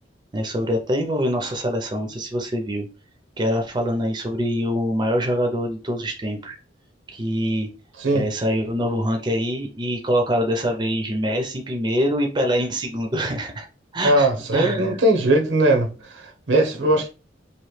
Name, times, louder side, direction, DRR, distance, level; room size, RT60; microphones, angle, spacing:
voice 1, 0.3-2.9 3.4-6.6 7.1-7.7 8.1-13.7 13.9-15.0 16.8-17.0, equal, 25° right, 0.5 m, -24 dB
voice 2, 14.0-15.9 16.1-17.1, right 1 dB, 85° right, 0.8 m, -19 dB
3.0 x 2.6 x 3.2 m
head